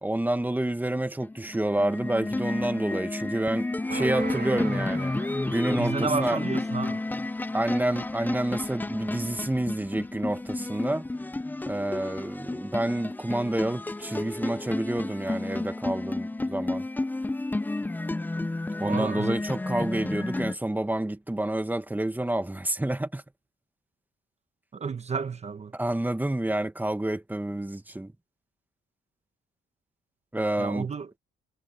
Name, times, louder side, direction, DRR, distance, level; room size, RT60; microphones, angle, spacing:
voice 1, 0.0-5.1 5.5-6.4 7.5-11.1 11.7-16.8 18.8-23.2 25.7-28.1 30.3-30.9, right 1 dB, 10° right, 1.6 m, -29 dB
sound 1, 1.2-20.6, left 2 dB, 10° left, 0.5 m, -31 dB
sound 2, 3.9-6.6, right 8 dB, 55° right, 2.0 m, -40 dB
voice 2, 5.8-7.0 18.8-19.4 24.7-25.7 30.6-31.1, right 5 dB, 35° right, 1.1 m, -31 dB
cardioid pair, 90°, 20 cm